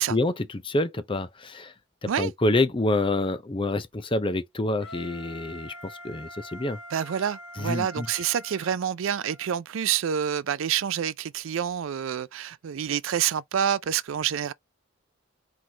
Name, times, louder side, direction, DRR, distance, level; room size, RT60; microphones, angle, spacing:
voice 1, 0.0-1.7 2.2-5.7 6.0-6.8 7.6-8.1, left 2 dB, 25° left, 0.6 m, -27 dB
Wind instrument woodwind instrument, 4.8-9.6, left 1 dB, 80° left, 1.3 m, -44 dB
voice 2, 6.9-14.5, right 9 dB, 75° right, 0.4 m, -27 dB
4.5 x 3.9 x 2.9 m
head